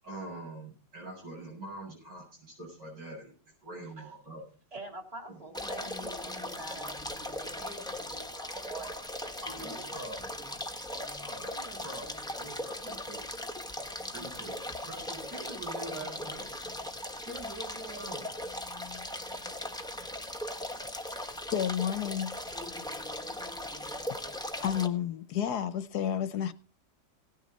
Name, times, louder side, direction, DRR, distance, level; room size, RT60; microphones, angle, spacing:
voice 1, 0.0-3.3 3.6-4.4 5.3-5.4 9.4-10.4 11.2-13.3 14.1-16.5 17.3-18.4, right 1 dB, 70° right, 8.4 m, -44 dB
voice 2, 4.7-9.9, right 2 dB, 20° right, 2.8 m, -46 dB
sound 1, 5.5-24.9, left 1 dB, 5° left, 0.9 m, -39 dB
voice 3, 21.5-22.3 24.6-26.5, left 9 dB, 65° left, 1.2 m, -30 dB
18.0 x 10.5 x 4.1 m
omnidirectional pair, 2.0 m